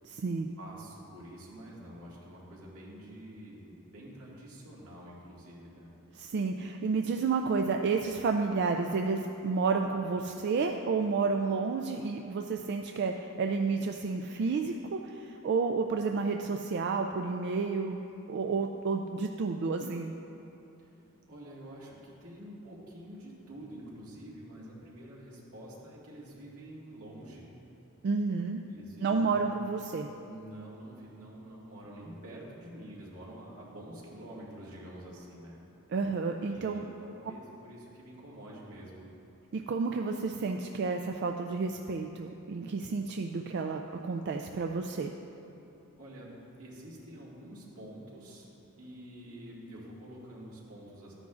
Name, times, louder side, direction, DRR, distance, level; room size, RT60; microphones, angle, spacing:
voice 1, 0.0-0.5 6.2-18.0 18.3-20.1 28.0-28.6 29.0-30.1 35.9-36.9 39.5-45.1, right 4 dB, 50° right, 4 dB, 0.3 m, -31 dB
voice 2, 0.6-5.9 20.8-20.9 21.3-27.5 28.7-29.7 30.2-35.6 36.5-39.0 46.0-46.3 46.6-48.5 48.8-51.1, right 1 dB, 85° right, -5 dB, 2.1 m, -47 dB
12.5 x 9.9 x 2.5 m, 2.9 s
head